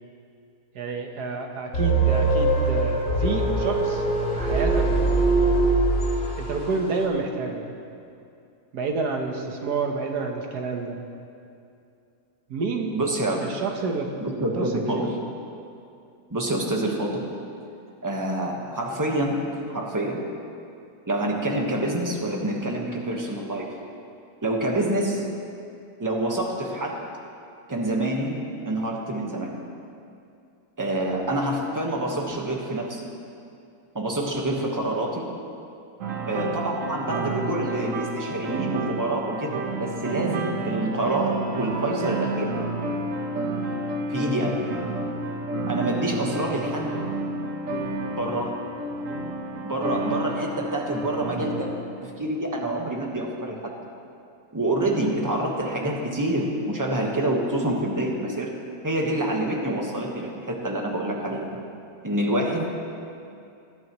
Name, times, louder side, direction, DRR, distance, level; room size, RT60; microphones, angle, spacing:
voice 1, 0.7-4.0 4.4-4.9 6.4-7.6 8.7-11.0 12.5-13.0 13.4-14.1 14.6-14.7 14.9-15.1, right 4 dB, 85° right, 3 dB, 1.7 m, -29 dB
sound 1, 1.7-6.7, right 2 dB, 60° left, 2.3 m, -22 dB
voice 2, 12.9-13.4 14.2-15.1 16.3-17.3 18.0-20.2 21.1-23.7 24.4-25.2 26.0-27.0 27.7-29.5 30.8-33.1 33.9-35.3 36.2-42.5 44.1-44.6 45.7-47.0 48.1-48.5 49.6-51.7 52.0-53.7 54.5-61.6 62.0-62.7, right 1 dB, 15° right, 0 dB, 1.1 m, -27 dB
sound 2, 36.0-51.8, right 2 dB, 60° right, 1.4 m, -30 dB
20.0 x 11.5 x 3.1 m, 2.5 s
omnidirectional pair, 1.7 m